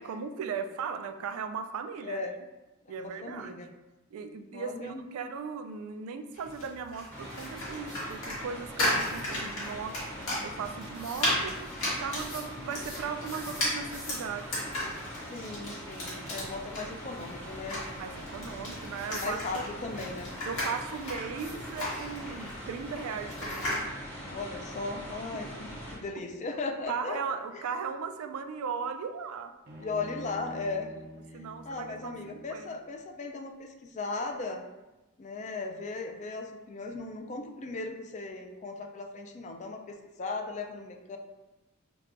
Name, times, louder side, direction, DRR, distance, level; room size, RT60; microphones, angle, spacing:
voice 1, 0.0-2.2 2.9-3.6 4.1-9.9 10.4-11.6 11.9-14.5 18.0-19.6 20.4-23.9 25.3-25.5 26.9-29.5 31.3-32.8, right 6 dB, 80° right, 9 dB, 0.3 m, -37 dB
voice 2, 2.0-2.4 2.8-3.7 4.5-5.0 15.3-17.8 19.2-20.3 24.3-27.2 27.5-27.6 29.8-31.1 31.3-34.6 35.2-41.2, left 3 dB, 35° left, 4 dB, 0.3 m, -37 dB
sound 1, 6.3-23.9, left 1 dB, 80° left, 1.5 m, -35 dB
sound 2, 7.1-26.0, equal, 10° left, 0.7 m, -43 dB
Bowed string instrument, 29.7-32.9, equal, 50° right, 0.7 m, -47 dB
5.7 x 2.2 x 2.5 m, 1.0 s
head